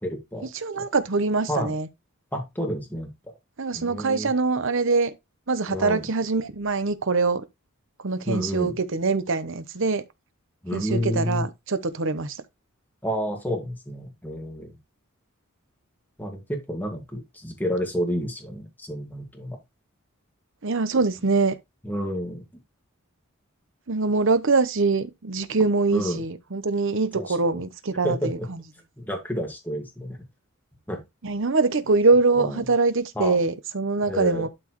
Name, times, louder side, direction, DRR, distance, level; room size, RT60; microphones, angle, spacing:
voice 1, 0.0-0.5 0.7-0.9 1.5-1.7 2.3-3.1 3.7-4.3 5.7-6.1 8.3-8.7 10.6-11.5 13.0-14.7 16.2-19.6 21.8-22.4 25.9-26.2 27.1-27.6 28.0-28.5 29.0-30.2 30.9-31.0 32.4-32.7 33.2-33.4 34.0-34.5, equal, 10° left, 1.9 m, -30 dB
voice 2, 0.5-1.9 3.6-5.1 5.5-7.4 8.0-10.0 10.7-12.4 20.6-21.5 23.9-28.4 31.2-34.5, right 3 dB, 60° right, 0.9 m, -23 dB
12.0 x 4.3 x 3.1 m
head